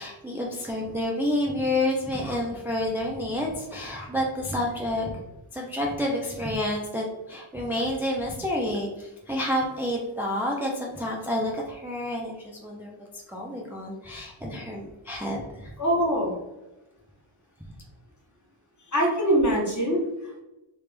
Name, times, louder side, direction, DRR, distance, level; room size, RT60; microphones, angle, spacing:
voice 1, 0.0-5.2 5.5-15.7, left 1 dB, 5° right, -2 dB, 0.5 m, -29 dB
voice 2, 15.8-16.3 18.9-20.4, equal, 35° left, -2 dB, 1.1 m, -23 dB
3.3 x 3.0 x 3.3 m, 1.0 s
wide cardioid pair, 100°, 50 cm